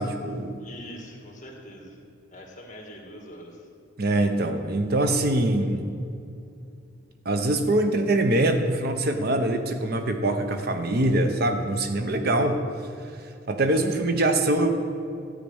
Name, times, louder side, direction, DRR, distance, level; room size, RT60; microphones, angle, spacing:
voice 1, 0.0-0.6 4.0-5.8 7.2-12.6 13.5-14.7, right 1 dB, 50° right, 6 dB, 0.8 m, -23 dB
voice 2, 0.6-2.0 2.3-3.7, equal, 40° left, 1 dB, 1.7 m, -43 dB
13.5 x 5.0 x 8.6 m, 2.5 s
head